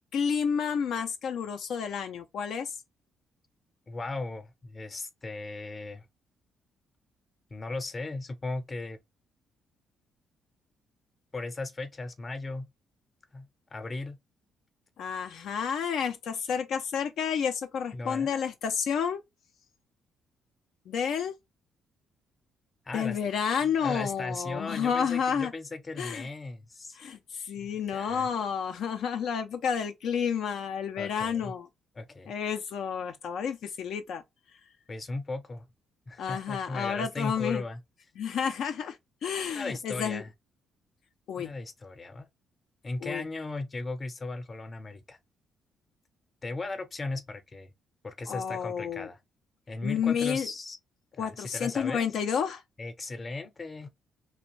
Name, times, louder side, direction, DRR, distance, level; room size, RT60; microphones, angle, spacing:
voice 1, 0.1-2.7 15.0-19.2 20.9-21.3 22.9-25.5 26.0-26.3 27.0-31.7 32.3-34.2 36.2-37.6 38.2-39.0 39.2-40.2 41.3-41.5 43.0-43.2 48.3-49.1 49.8-50.5 51.2-52.6, left 7 dB, 75° left, 0.3 m, -30 dB
voice 2, 3.9-6.1 7.5-9.0 11.3-12.7 13.3-14.2 17.9-18.4 22.9-23.2 23.6-27.0 27.6-28.3 31.0-31.5 31.9-32.3 34.9-35.7 36.1-37.8 39.5-40.3 41.4-42.3 42.8-45.2 46.4-47.7 48.0-49.2 49.7-50.8 51.2-52.2 52.8-53.9, left 3 dB, 30° left, 0.6 m, -37 dB
2.5 x 2.1 x 3.0 m
cardioid pair, 90°, 0 cm